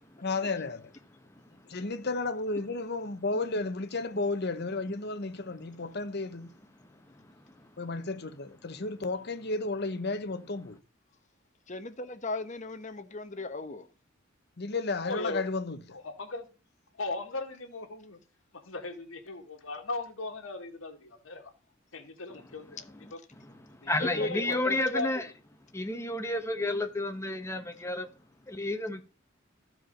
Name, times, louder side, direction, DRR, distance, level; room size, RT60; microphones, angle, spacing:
voice 1, 0.2-0.9 1.7-6.5 7.8-10.8 14.6-15.8, left 3 dB, 55° left, 1.0 m, -33 dB
voice 2, 11.7-13.9 24.0-24.8, left 2 dB, 35° left, 1.1 m, -37 dB
voice 3, 15.0-15.4 15.9-16.5 17.0-18.2 18.5-21.5 21.9-22.8 23.1-23.2 23.8-25.2, left 3 dB, 90° left, 1.9 m, -38 dB
voice 4, 23.4-25.3 25.7-28.1 28.5-29.0, left 1 dB, 15° left, 1.1 m, -31 dB
13.5 x 4.8 x 5.4 m
head